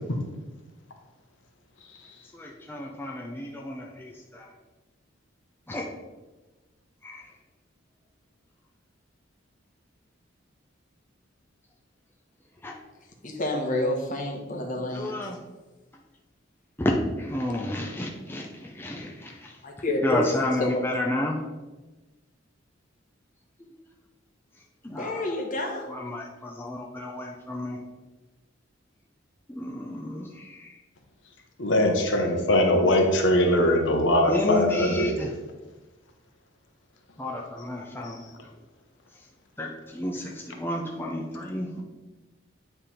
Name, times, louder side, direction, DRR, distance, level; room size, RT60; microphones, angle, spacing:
voice 1, 2.3-4.5 5.7-5.8 7.0-7.3 12.6-12.7 14.8-15.4 16.8-19.6 20.0-21.4 24.8-25.4 25.9-27.8 29.5-30.8 34.3-35.3 37.2-38.5 39.6-41.8, left 1 dB, 10° left, -1 dB, 0.6 m, -31 dB
voice 2, 13.2-15.3 19.6-20.8 25.0-25.9, left 2 dB, 45° left, 1 dB, 1.2 m, -29 dB
voice 3, 31.6-35.2 38.0-38.2, left 1 dB, 70° left, 2 dB, 1.1 m, -22 dB
9.1 x 3.5 x 4.4 m, 1.2 s
head